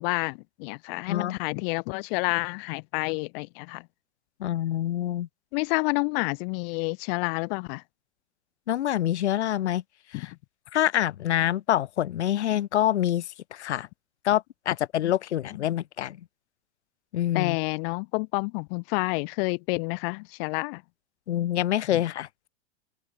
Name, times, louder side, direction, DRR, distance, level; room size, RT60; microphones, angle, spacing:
voice 1, 0.0-3.9 5.5-7.8 10.1-10.3 17.3-20.8 21.9-22.0, left 31 dB, 55° left, 4.4 m, -29 dB
voice 2, 1.1-1.4 4.4-5.3 8.7-9.8 10.1-10.3 10.7-13.3 13.5-13.9 14.2-16.2 17.1-17.6 21.3-22.3, left 12 dB, 70° left, 5.7 m, -26 dB
open air
hypercardioid pair, 100°, 35 cm